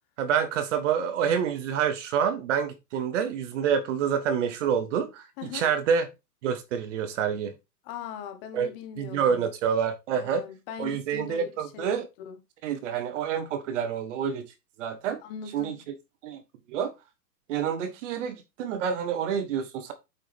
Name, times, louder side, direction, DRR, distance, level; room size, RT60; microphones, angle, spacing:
voice 1, 0.2-6.0 6.4-7.5 8.5-8.7 9.0-10.4 10.8-12.1 12.6-14.5 14.8-15.2 15.5-15.8 16.2-16.4 16.7-16.9 17.5-19.9, right 7 dB, 45° right, 1.4 m, -27 dB
voice 2, 5.4-5.7 7.8-9.5 10.1-12.0 12.2-12.4 15.2-15.8, left 8 dB, 35° left, 1.5 m, -40 dB
8.6 x 4.7 x 3.5 m
hypercardioid pair, 140°, 49 cm